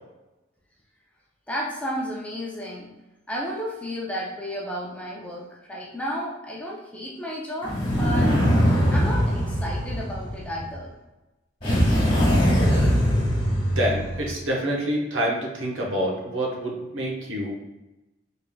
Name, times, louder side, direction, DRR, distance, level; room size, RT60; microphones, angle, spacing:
voice 1, 1.5-2.9 3.3-8.3 8.9-10.9, equal, 5° left, -4 dB, 0.5 m, -32 dB
sound 1, 7.6-10.7 11.6-14.3, equal, 25° left, 1.5 m, -21 dB
voice 2, 13.6-17.5, equal, 85° right, -2 dB, 1.0 m, -27 dB
3.8 x 3.6 x 2.3 m, 1.0 s
head